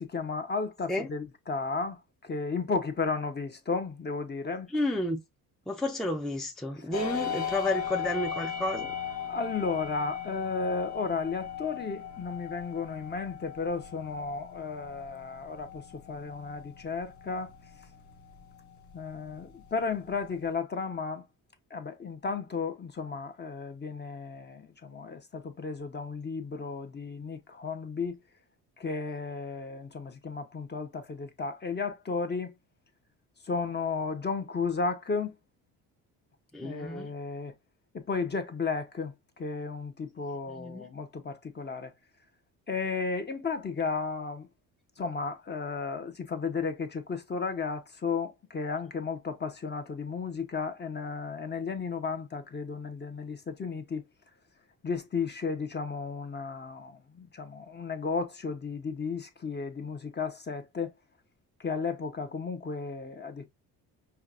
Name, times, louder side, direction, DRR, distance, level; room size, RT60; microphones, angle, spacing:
voice 1, 0.0-4.7 6.8-6.9 9.3-17.5 18.9-21.2 21.7-28.2 28.8-32.5 33.4-35.3 36.6-37.5 37.9-41.9 42.7-44.5 45.0-54.0 54.8-60.9 61.6-63.4, left 4 dB, 30° left, 0.9 m, -34 dB
voice 2, 4.7-5.2 5.7-8.9 36.5-37.1 40.5-40.9, left 1 dB, ahead, 0.6 m, -31 dB
sound 1, 6.9-20.5, left 7 dB, 50° left, 1.0 m, -39 dB
5.6 x 2.3 x 2.5 m
cardioid pair, 90°, 37 cm